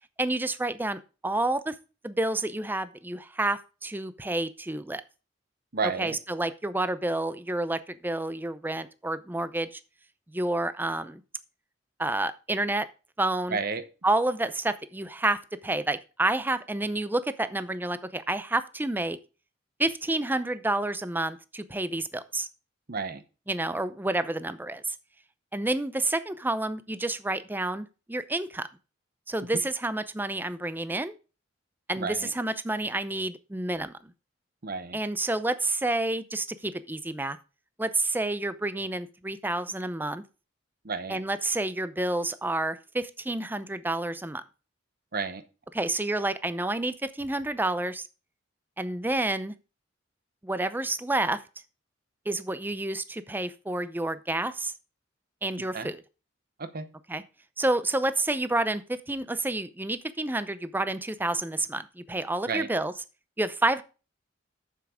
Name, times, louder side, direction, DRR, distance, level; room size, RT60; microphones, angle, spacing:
voice 1, 0.2-1.7 2.0-5.0 6.0-9.8 10.3-11.2 12.0-12.9 13.2-13.6 14.0-19.2 19.8-22.5 23.5-25.0 25.5-28.7 29.3-31.1 31.9-34.1 34.9-37.4 37.8-40.2 41.1-44.4 45.7-48.1 48.8-49.5 50.4-51.4 52.3-54.7 55.4-56.0 57.1-57.2 57.6-62.9 63.4-63.8, right 2 dB, 10° right, 13 dB, 0.5 m, -29 dB
voice 2, 5.7-6.2 13.5-13.8 22.9-23.2 29.5-29.6 32.0-32.3 34.6-35.0 40.8-41.2 45.1-45.4 55.7-55.9 56.6-56.9 62.5-62.7, right 4 dB, 50° right, 11 dB, 1.0 m, -31 dB
7.2 x 6.8 x 4.9 m, 0.32 s
head